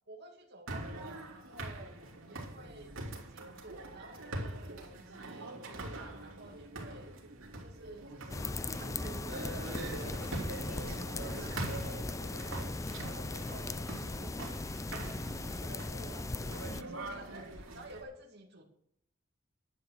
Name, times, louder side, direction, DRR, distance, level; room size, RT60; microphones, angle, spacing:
voice 1, 0.1-1.9 2.3-7.1 7.6-10.4 10.7-12.7 13.0-14.6 14.9-18.7, right 2 dB, 55° right, 0 dB, 2.4 m, -52 dB
sound 1, 0.7-18.0, right 2 dB, 90° right, 3.2 m, -43 dB
sound 2, 8.3-16.8, left 2 dB, 15° left, 0.4 m, -38 dB
11.5 x 8.4 x 6.4 m, 0.71 s
head